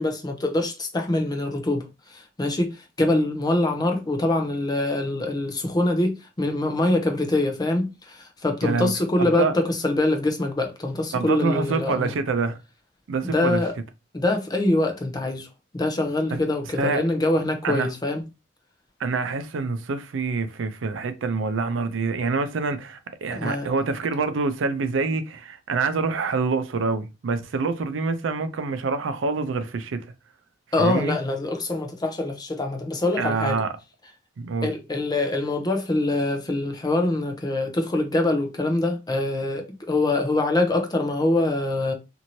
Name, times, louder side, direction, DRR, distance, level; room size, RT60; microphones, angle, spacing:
voice 1, 0.0-12.1 13.2-13.7 14.1-15.5 15.7-18.2 23.3-23.7 30.7-33.6 34.6-41.9, left 2 dB, 20° left, 0.5 m, -24 dB
voice 2, 8.6-8.9 9.2-9.6 11.1-12.6 13.1-13.6 16.3-16.4 16.8-17.0 17.6-17.9 19.0-30.0 30.8-31.2 33.2-33.7 34.4-34.7, right 4 dB, 75° right, 0.4 m, -26 dB
2.7 x 2.6 x 2.9 m
head